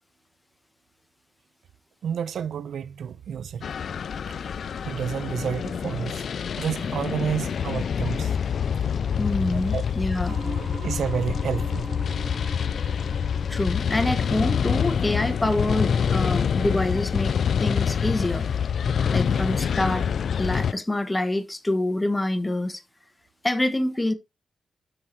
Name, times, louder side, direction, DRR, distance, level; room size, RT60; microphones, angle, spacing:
voice 1, 2.0-3.7 4.3-4.4 4.8-6.3 6.6-8.4 9.5-9.9 10.6-11.8, right 7 dB, 85° right, 0.4 m, -30 dB
sound 1, 3.6-20.7, left 7 dB, 70° left, 0.3 m, -26 dB
voice 2, 9.2-10.4 13.5-17.3 17.6-18.5 19.1-20.0 20.4-22.8 23.4-24.1, left 1 dB, 15° left, 1.2 m, -26 dB
sound 2, 10.3-19.8, right 2 dB, 20° right, 3.2 m, -43 dB
13.0 x 4.8 x 2.7 m
cardioid pair, 95°, 0 cm